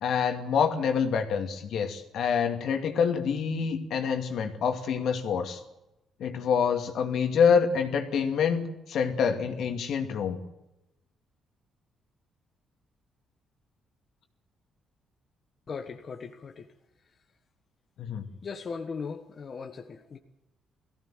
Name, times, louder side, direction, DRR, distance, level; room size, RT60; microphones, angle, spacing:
voice 1, 0.0-5.6 6.2-10.4 18.0-18.3, left 6 dB, 70° left, 5 dB, 2.4 m, -26 dB
voice 2, 15.7-16.7 18.4-20.2, left 5 dB, 45° left, 4 dB, 1.5 m, -38 dB
18.5 x 16.0 x 9.1 m, 0.92 s
cardioid pair, 90°, 0 cm